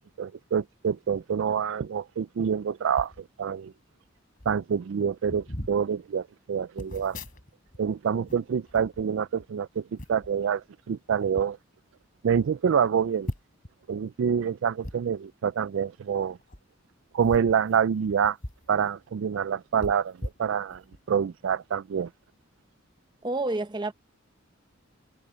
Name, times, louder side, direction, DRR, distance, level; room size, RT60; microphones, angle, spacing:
voice 1, 0.2-3.7 4.5-7.2 7.8-9.8 10.1-11.6 12.2-13.3 13.9-16.4 17.1-18.4 18.7-20.8 21.1-22.1, right 7 dB, 70° right, 0.4 m, -27 dB
sound 1, 2.9-3.2 4.1-4.2 4.4-4.6 5.2-5.8 6.8-7.8 8.1-9.5 10.0-10.3 11.1-11.5 12.0-12.1 12.4-12.5 13.2-13.7 14.8-15.0 16.4-16.6 17.2-18.7 19.0-19.1 19.8-21.0 21.5-21.6, left 1 dB, 45° left, 3.5 m, -39 dB
voice 2, 23.2-23.9, right 2 dB, 20° right, 0.7 m, -29 dB
head